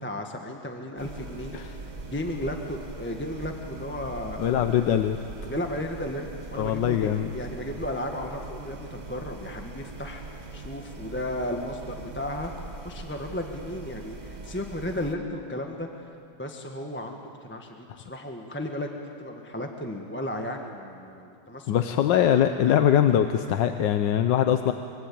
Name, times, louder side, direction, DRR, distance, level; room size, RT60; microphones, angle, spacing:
voice 1, 0.0-1.5 2.1-4.6 5.4-10.2 10.5-12.5 12.8-16.1 16.4-18.9 19.2-21.7 22.6-22.8, left 1 dB, 5° left, 2 dB, 1.3 m, -34 dB
sound 1, 1.0-15.1, right 3 dB, 25° right, 1.1 m, -41 dB
voice 2, 4.4-5.2 6.6-7.3 21.7-24.7, left 10 dB, 75° left, 8 dB, 1.4 m, -22 dB
24.5 x 24.0 x 8.7 m, 2.5 s
omnidirectional pair, 2.1 m